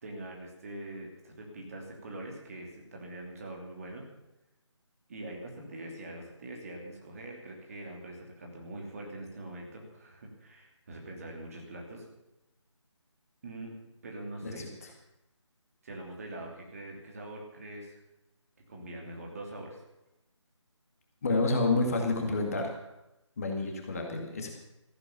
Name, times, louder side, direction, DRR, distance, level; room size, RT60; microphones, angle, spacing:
voice 1, 0.0-4.1 5.1-12.0 13.4-13.7 14.0-14.7 15.8-18.0 18.7-19.8, right 1 dB, 30° right, 0 dB, 2.8 m, -43 dB
voice 2, 14.4-14.9 21.2-22.7 23.4-24.5, left 3 dB, 30° left, 2 dB, 2.1 m, -29 dB
14.5 x 11.5 x 7.0 m, 0.92 s
figure-of-eight pair, 155°, 16 cm